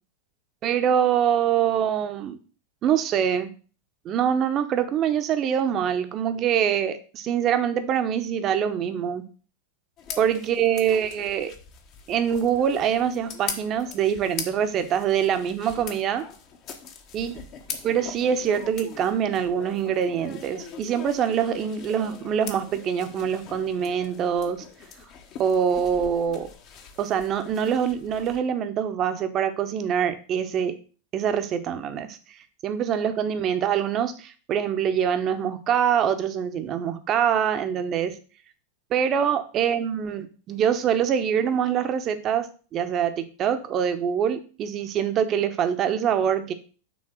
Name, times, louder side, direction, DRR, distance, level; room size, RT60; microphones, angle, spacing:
voice 1, 0.6-2.4 2.8-3.5 4.0-9.2 10.2-11.5 12.1-16.2 17.1-17.4 17.8-24.6 25.4-26.5 27.0-30.8 31.1-32.2 32.6-38.2 38.9-42.5 42.7-46.5, right 8 dB, 30° right, 9 dB, 0.8 m, -24 dB
sound 1, 10.0-28.4, left 6 dB, 40° left, 1.1 m, -41 dB
6.2 x 3.8 x 6.2 m, 0.38 s
figure-of-eight pair, 90°, 0 cm